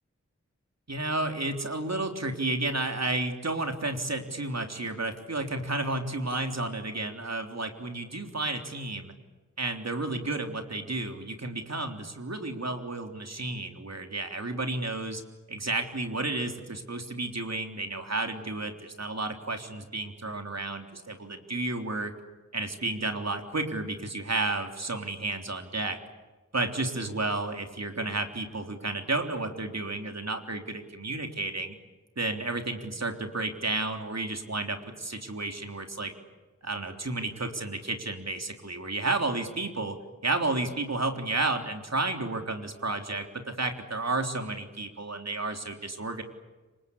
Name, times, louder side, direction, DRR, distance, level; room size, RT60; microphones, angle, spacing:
voice 1, 0.9-9.1 9.6-15.2 15.5-22.1 22.5-26.0 26.5-31.8 32.2-36.1 36.6-40.0 40.2-46.2, right 2 dB, 60° right, 5 dB, 3.6 m, -32 dB
27.5 x 25.0 x 8.5 m, 1.3 s
wide cardioid pair, 50°, 30 cm